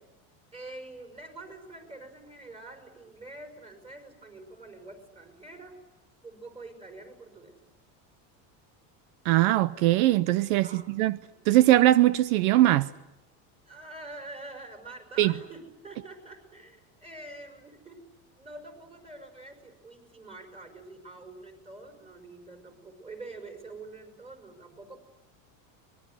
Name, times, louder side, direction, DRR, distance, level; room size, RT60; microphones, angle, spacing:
voice 1, 0.5-5.8 6.2-7.6 10.6-11.0 11.3-11.5 13.6-18.0 18.4-25.0, right 2 dB, 15° right, 5.3 m, -46 dB
voice 2, 9.2-11.2 11.5-12.9 15.2-15.3, right 15 dB, 80° right, 0.9 m, -21 dB
24.5 x 21.5 x 9.4 m
cardioid pair, 155°, 40 cm